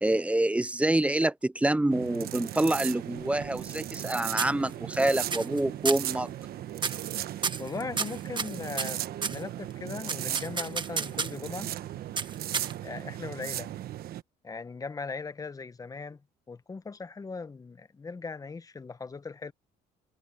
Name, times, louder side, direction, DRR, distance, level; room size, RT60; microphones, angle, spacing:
voice 1, 0.0-6.3, right 1 dB, 5° right, 0.4 m, -27 dB
sound 1, 1.9-14.2, right 12 dB, 65° right, 1.1 m, -37 dB
sound 2, 3.2-4.1 4.4-5.0 5.3-5.6 5.8-6.1 6.8-7.1 7.4-9.4 10.1-11.5 12.2-13.0, right 5 dB, 30° right, 1.5 m, -32 dB
voice 2, 7.6-11.7 12.8-13.7 14.4-16.2 16.5-19.5, left 4 dB, 20° left, 0.9 m, -39 dB
cardioid pair, 110°, 17 cm